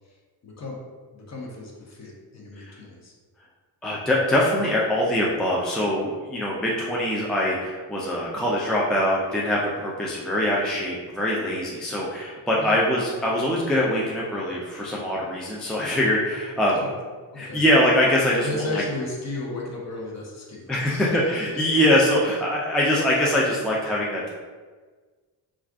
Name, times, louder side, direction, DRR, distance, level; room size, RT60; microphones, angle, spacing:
voice 1, 0.4-0.9 1.1-3.1 12.6-12.8 16.7-16.9 17.3-17.6 18.4-21.2, left 2 dB, 40° left, -2 dB, 0.8 m, -34 dB
voice 2, 3.8-16.8 17.4-18.8 20.7-24.3, left 1 dB, ahead, -4 dB, 0.3 m, -23 dB
2.4 x 2.4 x 3.4 m, 1.4 s
cardioid pair, 100°, 43 cm